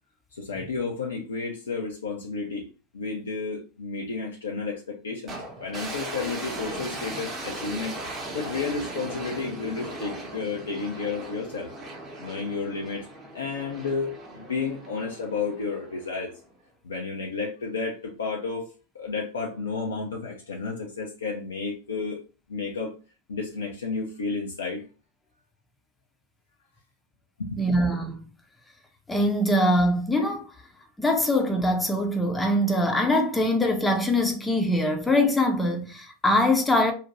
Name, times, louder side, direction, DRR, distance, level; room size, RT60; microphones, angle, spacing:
voice 1, 0.3-2.7 2.9-8.0 8.3-11.7 12.2-13.1 13.3-16.3 16.8-18.7 18.9-22.2 22.5-22.9 23.3-24.8 27.4-27.7, left 4 dB, 80° left, 0.5 m, -32 dB
sound 1, 5.3-16.5, right 2 dB, 25° right, 0.8 m, -38 dB
voice 2, 27.6-28.3 29.1-30.5 31.0-36.9, left 1 dB, 10° left, 0.6 m, -23 dB
2.7 x 2.1 x 2.9 m
figure-of-eight pair, 90°, 0 cm